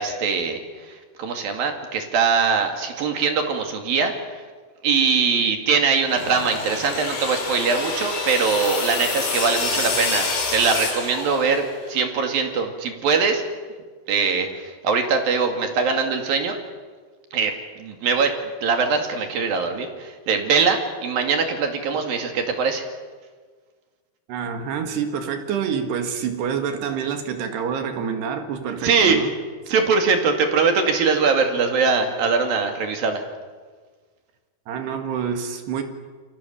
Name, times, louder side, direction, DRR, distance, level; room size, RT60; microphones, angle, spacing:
voice 1, 0.0-4.4 4.8-13.4 14.1-16.6 17.3-18.3 18.6-22.9 28.8-29.2 29.7-33.2, right 5 dB, 60° right, 3.9 m, -22 dB
sound 1, 6.0-11.9, left 4 dB, 70° left, 7.1 m, -27 dB
voice 2, 24.3-29.3 29.7-29.8 34.7-35.8, right 7 dB, 80° right, 4.0 m, -27 dB
29.5 x 23.5 x 7.1 m
omnidirectional pair, 4.8 m